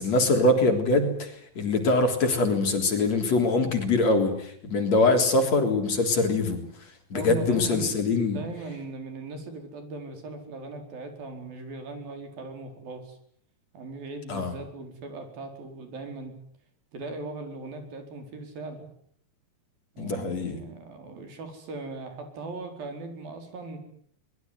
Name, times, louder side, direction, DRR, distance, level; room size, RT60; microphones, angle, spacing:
voice 1, 0.0-6.6 7.1-8.4 14.3-14.5 20.0-20.6, left 2 dB, 50° left, 5 dB, 4.8 m, -23 dB
voice 2, 7.1-8.0 8.3-13.2 13.7-16.3 16.9-18.9 19.9-23.8, right 3 dB, 85° right, 6 dB, 6.3 m, -39 dB
24.5 x 21.5 x 9.6 m, 0.63 s
omnidirectional pair, 4.0 m